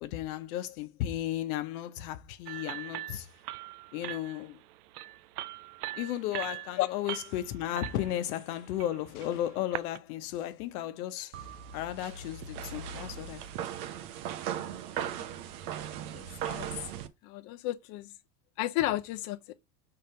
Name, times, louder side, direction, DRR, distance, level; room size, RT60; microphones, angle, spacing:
voice 1, 0.0-3.3 3.9-4.6 6.0-11.4 11.7-13.7, left 12 dB, 75° left, 0.9 m, -34 dB
sound 1, 2.5-10.0, right 17 dB, 85° right, 0.5 m, -42 dB
sound 2, 11.3-17.1, right 9 dB, 70° right, 1.0 m, -38 dB
voice 2, 16.1-16.7 17.2-18.1 18.6-19.5, left 16 dB, 50° left, 0.6 m, -33 dB
5.3 x 4.0 x 5.6 m
supercardioid pair, 135°, 45 cm